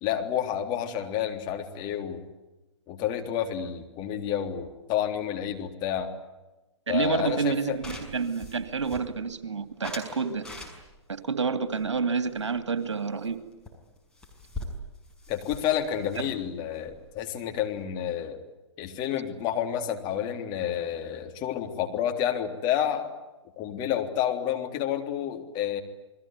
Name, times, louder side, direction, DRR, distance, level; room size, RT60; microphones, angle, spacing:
voice 1, 0.0-2.2 2.9-6.1 6.9-7.8 15.3-18.4 18.8-23.1 23.6-25.8, left 10 dB, 30° left, 4 dB, 3.5 m, -29 dB
voice 2, 6.9-10.5 11.1-13.4, right 5 dB, 75° right, 10 dB, 2.6 m, -29 dB
sound 1, 7.3-9.4 9.8-11.1 11.7-13.0 13.2-13.4 13.7-13.8 14.0-17.8, left 2 dB, 5° left, 5.8 m, -42 dB
29.5 x 21.0 x 9.5 m, 1.1 s
figure-of-eight pair, 125°, 15 cm